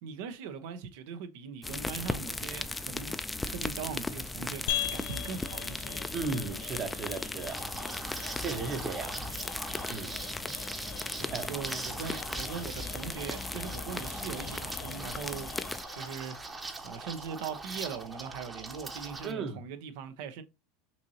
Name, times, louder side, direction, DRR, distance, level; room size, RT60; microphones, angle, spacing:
voice 1, 0.0-3.1 3.4-6.1 9.2-9.3 10.4-10.5 11.1-16.4 16.8-20.4, right 7 dB, 70° right, 0.8 m, -41 dB
sound 1, 1.6-15.8, left 2 dB, 10° left, 0.5 m, -37 dB
sound 2, 4.7-19.3, left 12 dB, 75° left, 0.5 m, -43 dB
voice 2, 6.1-7.6 8.4-9.2 9.9-10.2 11.3-11.5 19.2-19.6, right 4 dB, 40° right, 1.1 m, -35 dB
Liquid, 7.5-19.3, right 3 dB, 15° right, 0.9 m, -42 dB
5.8 x 2.8 x 2.8 m
supercardioid pair, 105°, 0 cm